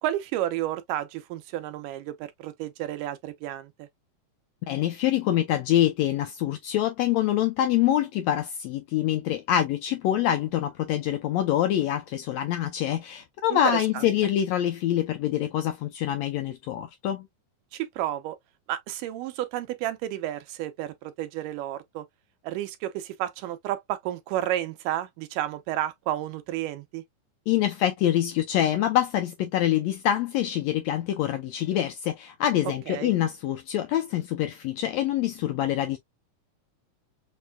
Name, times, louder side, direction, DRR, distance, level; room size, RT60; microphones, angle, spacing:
voice 1, 0.0-3.9 13.5-13.6 13.9-14.0 17.7-18.4 18.7-22.1 22.4-27.0 32.9-33.1, right 13 dB, 85° right, 2.4 m, -31 dB
voice 2, 4.6-17.3 27.5-36.0, left 12 dB, 90° left, 1.5 m, -25 dB
6.4 x 2.6 x 2.2 m
omnidirectional pair, 3.7 m